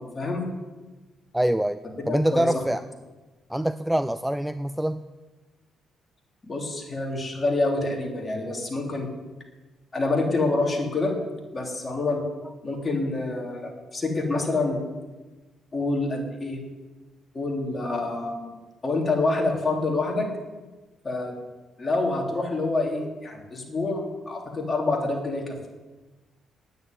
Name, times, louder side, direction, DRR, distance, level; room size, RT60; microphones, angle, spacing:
voice 1, 1.3-1.8 2.1-2.8 3.5-5.0, right 1 dB, 5° right, 13 dB, 0.4 m, -25 dB
voice 2, 2.1-2.5 6.4-9.1 9.9-11.2 11.5-12.2 12.6-14.8 15.7-16.6 17.3-18.5 18.8-20.3 21.0-21.3 21.8-25.7, left 2 dB, 30° left, 0 dB, 3.5 m, -27 dB
10.0 x 9.3 x 9.7 m, 1.2 s
cardioid pair, 90°, 0 cm